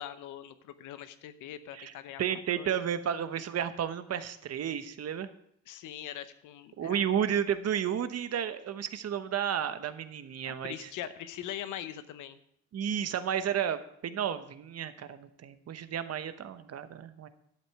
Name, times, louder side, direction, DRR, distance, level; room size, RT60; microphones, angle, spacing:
voice 1, 0.0-2.8 5.7-7.1 10.4-12.4, left 11 dB, 90° left, 12 dB, 0.9 m, -42 dB
voice 2, 2.2-5.3 6.8-10.9 12.7-17.3, right 9 dB, 55° right, 11 dB, 0.9 m, -32 dB
11.5 x 8.2 x 4.7 m, 0.70 s
cardioid pair, 90°, 30 cm